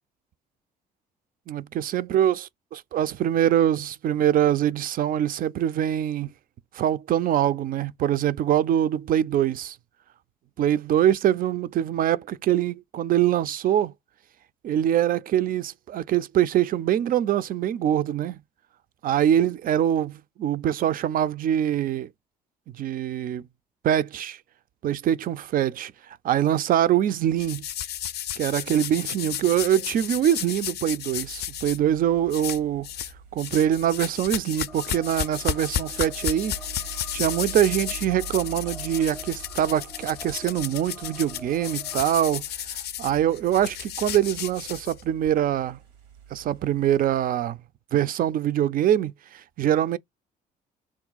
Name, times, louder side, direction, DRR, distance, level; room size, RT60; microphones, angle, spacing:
voice 1, 1.5-6.3 6.7-9.8 10.6-13.9 14.6-18.4 19.0-22.1 22.7-23.4 23.8-24.4 24.8-25.9 26.2-27.6 28.4-32.9 33.3-36.6 37.1-42.4 42.7-45.8 46.3-47.6 47.9-50.0, right 10 dB, 45° right, 0.4 m, -24 dB
sound 1, 27.4-31.8 32.3-33.1 33.4-45.3, left 10 dB, 55° left, 0.4 m, -33 dB
sound 2, 31.1-47.3, right 9 dB, 85° right, 0.8 m, -46 dB
sound 3, 34.7-42.1, left 3 dB, 15° left, 0.6 m, -46 dB
3.5 x 2.3 x 3.9 m
hypercardioid pair, 55°, 20 cm